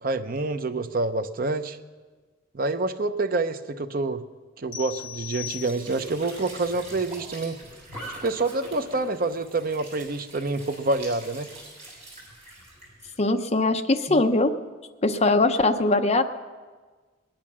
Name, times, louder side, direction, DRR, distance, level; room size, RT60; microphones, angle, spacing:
voice 1, 0.0-1.8 2.5-4.2 4.6-7.6 8.2-11.5, right 2 dB, 50° right, 9 dB, 0.7 m, -27 dB
sound 1, 4.7-6.2, left 12 dB, 75° left, 1.6 m, -38 dB
Squeak / Sink (filling or washing) / Trickle dribble, 5.2-13.1, right 1 dB, 35° right, 6.1 m, -43 dB
voice 2, 13.2-14.5 15.0-16.2, left 2 dB, 35° left, 6 dB, 0.8 m, -21 dB
20.5 x 10.5 x 6.1 m, 1.4 s
head